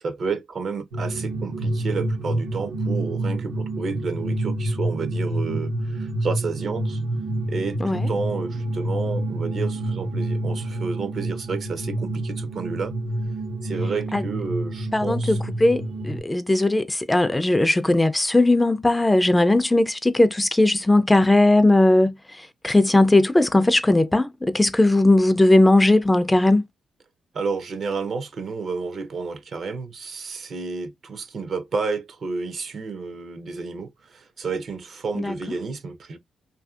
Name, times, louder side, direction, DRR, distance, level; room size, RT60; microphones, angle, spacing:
voice 1, 0.0-7.0 7.5-12.9 13.6-15.4 27.3-36.2, right 4 dB, 60° right, 0.6 m, -31 dB
sound 1, 0.9-16.2, right 1 dB, 90° right, 0.8 m, -28 dB
voice 2, 14.9-26.7 35.1-35.3, left 2 dB, 15° left, 0.3 m, -18 dB
2.6 x 2.5 x 2.3 m
cardioid pair, 75°, 0 cm